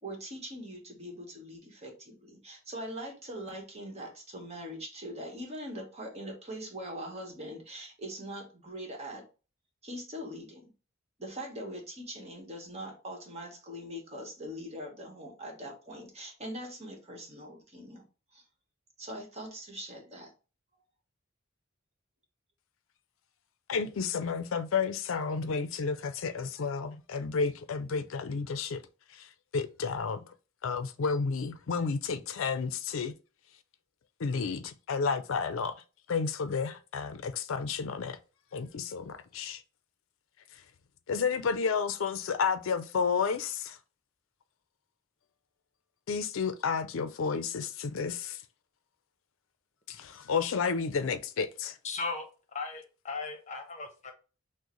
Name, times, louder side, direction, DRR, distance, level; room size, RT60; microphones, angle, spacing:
voice 1, 0.0-9.2 9.8-10.6 11.2-18.1 18.3-18.4 19.0-20.3, equal, 35° right, 1.2 m, -42 dB
voice 2, 23.7-28.8 29.1-29.3 29.5-30.2 30.6-33.1 34.2-35.7 36.1-38.2 38.5-39.6 41.1-43.8 46.1-48.4 49.9-51.7, left 5 dB, 80° left, 0.4 m, -31 dB
voice 3, 51.8-52.3 52.5-54.1, left 4 dB, 35° left, 0.9 m, -37 dB
6.2 x 2.1 x 3.0 m
head